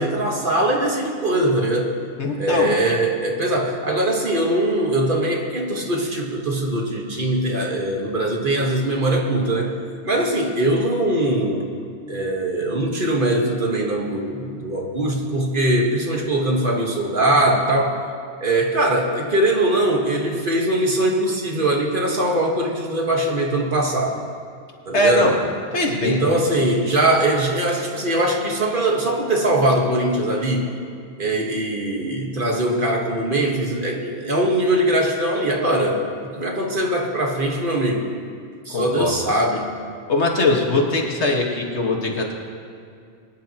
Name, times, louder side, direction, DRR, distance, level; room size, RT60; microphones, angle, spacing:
voice 1, 0.0-2.0 2.4-9.8 10.0-11.7 12.1-18.0 18.4-24.2 24.8-25.3 26.0-30.7 31.2-38.1 38.6-39.7, right 1 dB, 50° right, 0 dB, 1.6 m, -21 dB
voice 2, 2.2-2.7 24.9-25.4 25.7-26.2 38.7-39.1 40.1-42.3, left 2 dB, 80° left, 0 dB, 1.9 m, -21 dB
22.5 x 10.5 x 2.9 m, 2.4 s
omnidirectional pair, 1.1 m